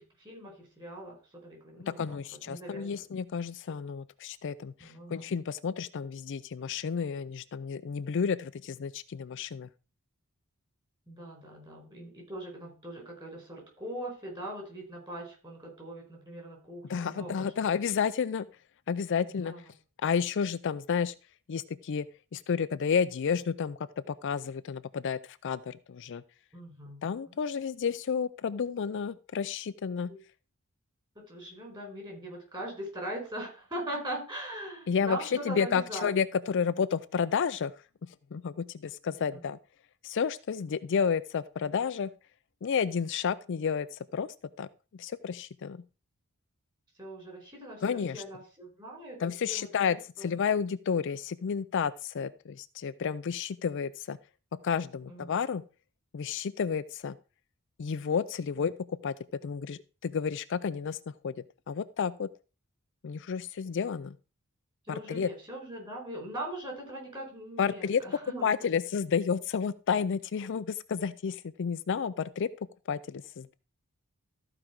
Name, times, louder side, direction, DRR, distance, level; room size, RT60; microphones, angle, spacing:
voice 1, 0.0-2.2 2.5-2.9 4.8-5.3 11.1-17.5 19.4-19.6 26.5-27.3 30.1-30.2 31.1-36.1 39.3-39.4 47.0-49.2 49.5-50.3 55.1-55.3 58.6-58.7 64.9-68.5, right 1 dB, 20° right, 0 dB, 4.6 m, -41 dB
voice 2, 2.0-9.7 16.9-18.5 18.9-19.5 20.0-21.1 21.5-22.1 22.3-23.8 24.1-26.2 27.0-30.1 34.9-37.7 38.3-39.6 40.0-42.1 42.6-44.3 44.6-44.7 44.9-45.8 47.8-48.2 49.2-54.2 54.6-55.6 56.1-57.2 57.8-58.7 59.0-59.1 59.4-61.0 61.2-61.4 61.7-62.3 63.0-64.2 64.9-65.3 67.6-68.0 68.4-72.5 72.9-73.6, left 6 dB, 55° left, 14 dB, 0.4 m, -31 dB
14.0 x 5.0 x 4.5 m, 0.34 s
head